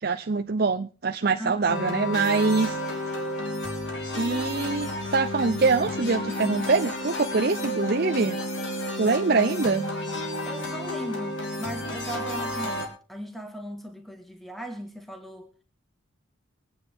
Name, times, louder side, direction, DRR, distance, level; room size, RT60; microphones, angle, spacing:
voice 1, 0.0-2.8 4.2-8.4 9.0-9.9, right 4 dB, 50° right, 6 dB, 0.6 m, -24 dB
voice 2, 1.4-1.7 10.4-15.5, right 1 dB, ahead, 6 dB, 1.6 m, -38 dB
sound 1, 1.7-12.9, left 1 dB, 65° left, 3.7 m, -31 dB
24.0 x 9.6 x 3.5 m, 0.35 s
head